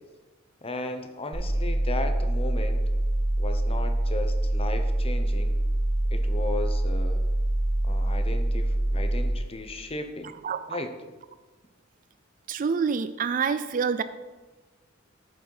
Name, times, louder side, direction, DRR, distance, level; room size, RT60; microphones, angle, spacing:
voice 1, 0.6-2.8 3.4-5.6 6.1-7.2 7.8-10.4 10.7-10.9, left 2 dB, 30° left, 7 dB, 0.9 m, -35 dB
sound 1, 1.3-9.3, right 1 dB, 65° right, 2.2 m, -25 dB
voice 2, 10.4-10.8 12.5-14.0, right 6 dB, 40° right, 12 dB, 0.4 m, -27 dB
11.5 x 7.8 x 4.8 m, 1.3 s
head